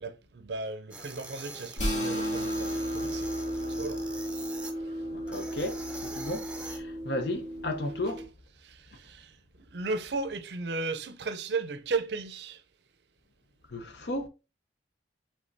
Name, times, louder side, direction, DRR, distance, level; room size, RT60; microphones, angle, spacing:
voice 1, 0.0-4.0 8.6-9.3 9.7-12.6, right 3 dB, 65° right, 0.5 m, -35 dB
sound 1, 0.9-4.7 5.3-6.8, right 2 dB, 5° right, 0.6 m, -44 dB
sound 2, 1.8-8.2, equal, 40° left, 2.0 m, -34 dB
voice 2, 5.1-8.3 13.7-14.3, left 1 dB, 65° left, 0.8 m, -34 dB
5.2 x 3.4 x 2.6 m
head